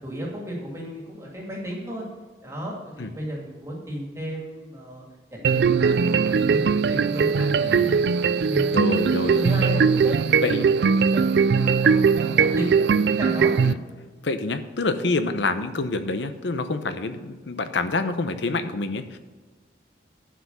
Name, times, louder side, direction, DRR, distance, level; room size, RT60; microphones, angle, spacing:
voice 1, 0.0-2.0 2.4-5.0 5.3-13.5, equal, 15° right, -2 dB, 2.1 m, -34 dB
sound 1, 5.4-13.7, right 5 dB, 65° right, 0.3 m, -20 dB
voice 2, 7.6-8.0 8.7-9.8 10.4-10.7 13.6-13.8 14.2-19.2, left 3 dB, 75° left, 10 dB, 0.8 m, -27 dB
11.5 x 5.1 x 6.7 m, 1.4 s
head